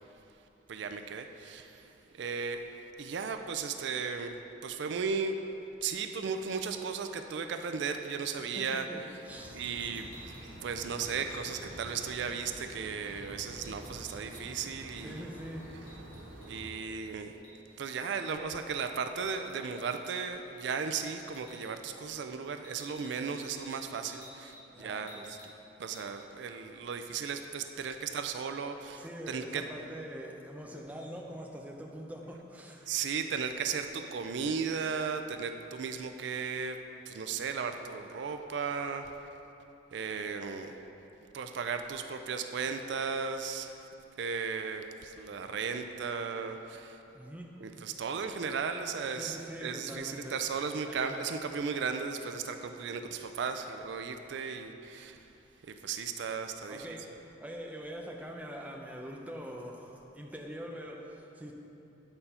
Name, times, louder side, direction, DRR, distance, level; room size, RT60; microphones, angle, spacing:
voice 1, 0.7-1.8 2.1-2.7 3.0-4.4 4.6-5.3 5.8-8.9 9.5-10.3 10.6-15.3 16.5-17.3 17.8-25.4 25.8-29.7 32.9-39.1 39.9-40.9 41.3-43.8 44.2-47.0 47.6-55.2 55.7-57.0, right 5 dB, 65° right, 7 dB, 0.4 m, -36 dB
sound 1, 6.5-6.9 7.5-7.7 8.1-8.4 9.8-12.7 13.0-13.1 13.4-14.7 15.0-17.0 17.4-17.6 18.1-18.3 19.3-20.4 20.7-21.0 21.2-21.7 22.6-24.7 24.9-25.5 25.8-26.1, equal, 70° left, 1.7 m, -55 dB
voice 2, 8.4-9.7 15.0-15.6 24.7-25.3 28.9-32.9 47.1-47.5 49.1-50.4 50.9-51.3 56.7-57.0 57.4-61.5, equal, 10° right, 0 dB, 0.5 m, -44 dB
sound 2, 9.3-16.7, right 1 dB, 85° right, 1.4 m, -48 dB
8.8 x 4.3 x 5.5 m, 2.9 s
head